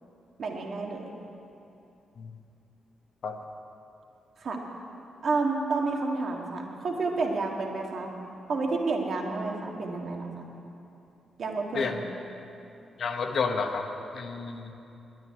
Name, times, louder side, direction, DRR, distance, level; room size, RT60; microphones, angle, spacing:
voice 1, 0.4-1.1 4.4-4.6 5.2-8.1 8.5-10.3 11.4-12.0, right 3 dB, 60° right, 1 dB, 1.8 m, -30 dB
voice 2, 13.0-13.9 14.1-14.7, left 5 dB, 60° left, 5 dB, 1.2 m, -30 dB
10.5 x 9.4 x 9.7 m, 2.8 s
cardioid pair, 80°, 0 cm